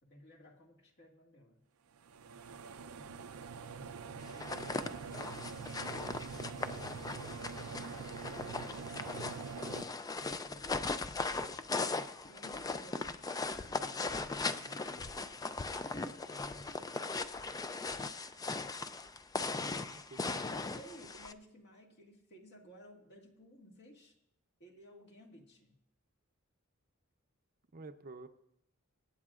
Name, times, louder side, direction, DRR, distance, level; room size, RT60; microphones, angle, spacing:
voice 1, 0.0-1.6 3.0-5.6 9.7-11.1 11.8-15.3 15.8-17.1 20.2-24.2 24.6-25.8, equal, 55° left, -1 dB, 1.9 m, -57 dB
sound 1, 2.0-9.8, right 5 dB, 90° right, 0.6 m, -45 dB
sound 2, 4.3-21.3, left 3 dB, 15° left, 0.4 m, -39 dB
voice 2, 19.5-20.6 27.7-28.3, right 3 dB, 45° right, 8 dB, 0.6 m, -51 dB
25.0 x 8.4 x 2.5 m, 0.81 s
head